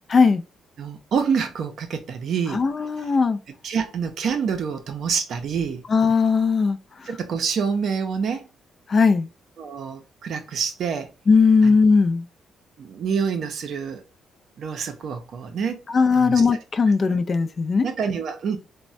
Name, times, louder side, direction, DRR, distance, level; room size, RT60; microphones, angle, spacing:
voice 1, 0.1-0.4 2.5-3.4 5.9-7.1 8.9-9.3 11.3-12.3 15.9-17.9, left 4 dB, 40° left, 0.3 m, -18 dB
voice 2, 0.8-2.6 3.6-5.8 7.1-8.5 9.6-11.1 11.6-11.7 12.8-14.0 14.6-15.8 16.2-16.4 17.8-18.6, right 6 dB, 65° right, 0.5 m, -27 dB
3.1 x 2.1 x 2.5 m
cardioid pair, 90°, 0 cm